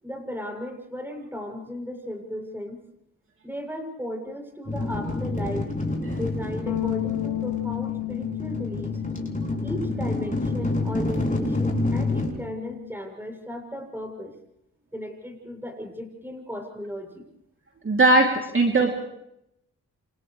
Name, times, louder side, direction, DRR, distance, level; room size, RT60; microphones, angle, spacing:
voice 1, 0.0-2.8 3.4-5.7 6.1-9.0 9.6-14.3 14.9-17.2, equal, 5° right, 3 dB, 7.7 m, -35 dB
sound 1, 4.7-12.3, left 2 dB, 25° left, 6.7 m, -28 dB
Bass guitar, 6.7-12.9, left 16 dB, 85° left, 1.0 m, -33 dB
voice 2, 17.8-18.9, right 2 dB, 40° right, 0 dB, 3.1 m, -19 dB
29.0 x 28.5 x 3.3 m, 0.79 s
cardioid pair, 65°, 32 cm